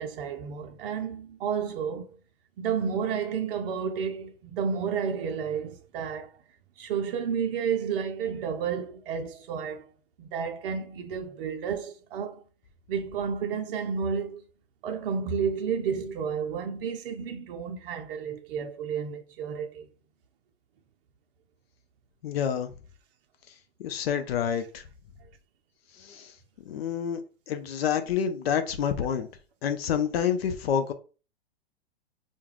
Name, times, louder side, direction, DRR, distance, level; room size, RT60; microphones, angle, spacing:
voice 1, 0.0-2.2 2.6-6.3 6.8-9.9 10.2-12.4 12.9-14.4 14.8-19.9, right 7 dB, 55° right, 0.5 m, -31 dB
voice 2, 22.2-22.7 23.8-24.8 26.0-26.3 26.7-27.2 27.5-29.3 29.6-30.9, left 8 dB, 65° left, 0.5 m, -28 dB
2.2 x 2.1 x 3.1 m
hypercardioid pair, 115°, 32 cm